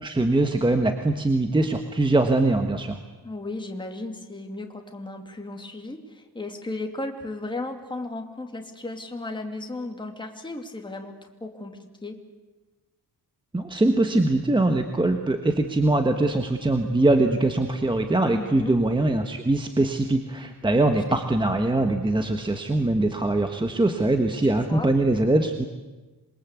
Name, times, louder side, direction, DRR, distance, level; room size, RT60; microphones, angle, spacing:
voice 1, 0.0-3.0 13.5-25.6, right 2 dB, 10° right, 5 dB, 1.4 m, -22 dB
voice 2, 3.2-11.1 11.4-12.2 18.3-18.8 21.1-21.2 24.5-24.9, left 2 dB, 10° left, 3 dB, 2.7 m, -35 dB
27.0 x 22.5 x 8.3 m, 1.2 s
wide cardioid pair, 160°, 39 cm